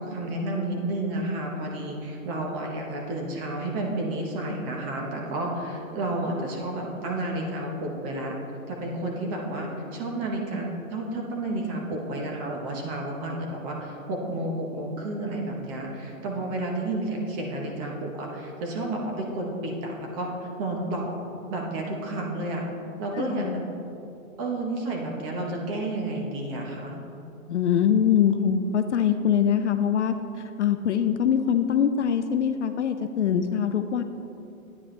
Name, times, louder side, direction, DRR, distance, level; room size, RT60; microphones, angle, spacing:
voice 1, 0.0-8.4 8.7-21.2 21.5-22.7 23.0-23.6 24.4-27.0, right 2 dB, 20° right, 0 dB, 1.0 m, -31 dB
voice 2, 23.2-23.6 27.5-30.2 30.6-34.0, left 8 dB, 55° left, 8 dB, 0.5 m, -23 dB
9.8 x 9.5 x 3.3 m, 2.7 s
hypercardioid pair, 145°, 43 cm